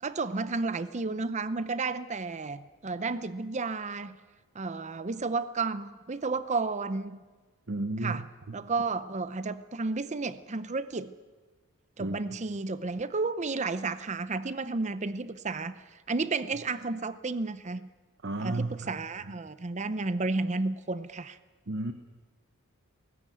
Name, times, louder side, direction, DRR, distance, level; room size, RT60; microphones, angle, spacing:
voice 1, 0.0-4.2 4.5-7.2 8.0-8.2 8.5-11.1 12.0-17.9 18.4-21.4, right 3 dB, 35° right, 13 dB, 0.6 m, -32 dB
voice 2, 7.7-8.2 12.0-12.2 18.2-18.9 21.7-21.9, right 2 dB, 55° right, 7 dB, 1.0 m, -32 dB
19.5 x 16.0 x 9.2 m, 1.3 s
head